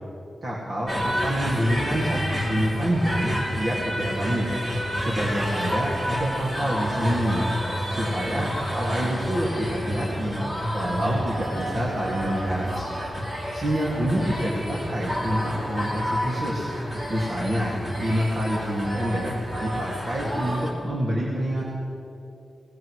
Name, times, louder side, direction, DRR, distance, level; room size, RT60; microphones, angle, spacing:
voice 1, 0.4-4.5 5.0-7.4 7.9-10.4 10.7-12.7 13.5-16.7 17.1-17.7 18.0-19.3 19.6-21.6, equal, 40° right, -5 dB, 2.3 m, -27 dB
sound 1, 0.9-20.7, equal, 20° right, 2.8 m, -30 dB
23.0 x 19.5 x 3.2 m, 2.7 s
wide cardioid pair, 150°, 0 cm